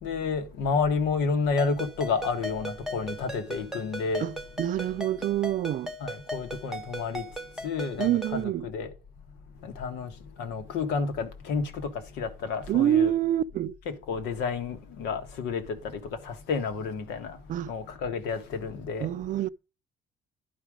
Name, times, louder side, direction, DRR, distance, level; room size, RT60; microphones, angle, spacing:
voice 1, 0.0-4.4 6.0-7.2 7.6-8.9 9.6-10.1 10.4-13.1 13.8-17.4 17.7-19.1, left 5 dB, 90° left, 1.5 m, -30 dB
Ringtone, 1.6-8.4, right 1 dB, 5° right, 0.9 m, -38 dB
voice 2, 4.2-5.9 8.0-8.7 12.7-13.7 17.5-17.7 19.0-19.5, right 11 dB, 50° right, 0.4 m, -26 dB
11.0 x 4.9 x 4.9 m
cardioid pair, 110°, 17 cm